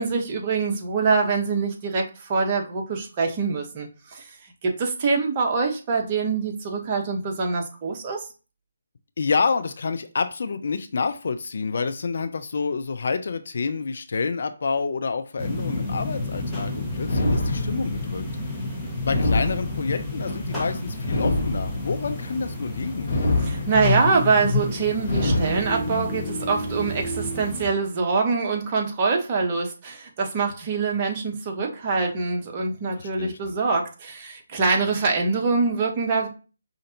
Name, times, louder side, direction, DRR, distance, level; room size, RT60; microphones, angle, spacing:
voice 1, 0.0-4.3 4.6-8.3 23.4-36.3, right 4 dB, 30° right, 1 dB, 0.9 m, -24 dB
voice 2, 9.2-18.2 19.0-23.1 33.0-33.5, left 4 dB, 55° left, 9 dB, 0.4 m, -28 dB
sound 1, 15.4-27.7, left 2 dB, 5° left, 1.0 m, -30 dB
sound 2, 17.0-18.1 19.0-20.1 21.0-22.1 23.0-24.1 25.0-26.1, left 2 dB, 35° left, 1.0 m, -25 dB
5.1 x 2.5 x 2.8 m, 0.35 s
figure-of-eight pair, 145°, 0 cm